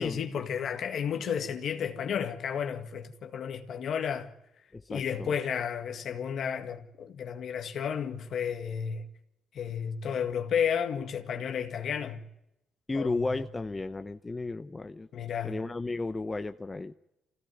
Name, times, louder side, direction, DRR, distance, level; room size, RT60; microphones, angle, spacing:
voice 1, 0.0-4.3 4.9-9.0 9.5-12.2 12.9-13.4 15.1-15.6, left 7 dB, 65° left, 1.9 m, -32 dB
voice 2, 4.7-5.3 12.9-15.1 15.4-16.9, left 3 dB, 20° left, 0.9 m, -33 dB
24.0 x 17.0 x 9.4 m
cardioid pair, 90°, 0 cm